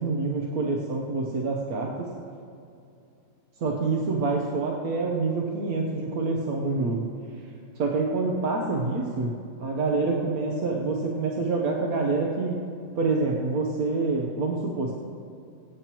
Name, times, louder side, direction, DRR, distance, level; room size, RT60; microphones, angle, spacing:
voice 1, 0.0-2.1 3.6-7.1 7.8-9.3 9.6-12.6 12.9-14.9, right 3 dB, 85° right, -1 dB, 1.5 m, -26 dB
23.0 x 8.5 x 3.0 m, 2.6 s
omnidirectional pair, 1.5 m